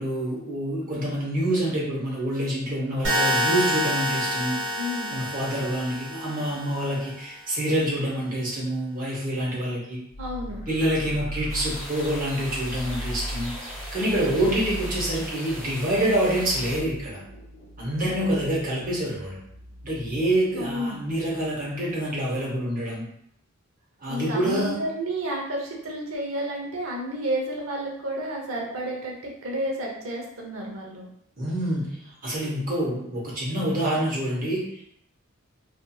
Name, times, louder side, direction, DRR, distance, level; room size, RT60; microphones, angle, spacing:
voice 1, 0.0-4.6 5.1-10.0 10.7-13.5 13.9-17.2 17.8-19.4 19.8-23.0 24.0-24.8 31.4-31.9 32.2-34.9, right 1 dB, 40° right, -4 dB, 0.8 m, -26 dB
sound 1, 3.0-7.1, equal, 65° right, 1.1 m, -27 dB
voice 2, 4.7-5.1 10.2-10.7 20.5-21.0 24.1-31.1, right 1 dB, 90° right, -1 dB, 0.7 m, -31 dB
sound 2, 10.1-21.5, equal, 45° left, 0.4 m, -39 dB
sound 3, 11.5-16.8, equal, ahead, 0.6 m, -39 dB
2.7 x 2.5 x 2.3 m, 0.71 s
head